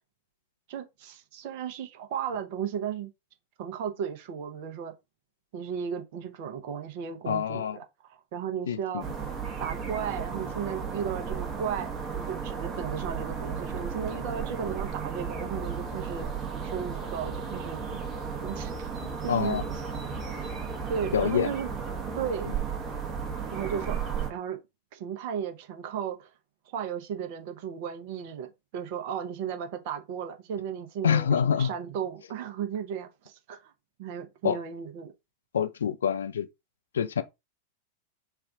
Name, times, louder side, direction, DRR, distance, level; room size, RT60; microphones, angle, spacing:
voice 1, 0.7-3.1 3.6-4.9 5.5-9.0 9.6-16.3 16.6-18.0 18.4-19.6 20.9-21.7 22.1-22.5 23.5-24.0 24.3-24.6 24.9-26.3 26.7-33.7 34.0-35.1, right 8 dB, 50° right, 0.7 m, -35 dB
voice 2, 7.3-7.8 8.7-9.0 19.3-19.6 21.1-21.5 31.0-31.7 34.4-34.6 35.5-36.5 36.9-37.2, left 8 dB, 65° left, 0.4 m, -26 dB
sound 1, 9.0-24.3, right 6 dB, 25° right, 0.9 m, -34 dB
3.4 x 2.4 x 3.5 m
figure-of-eight pair, 90°, 0 cm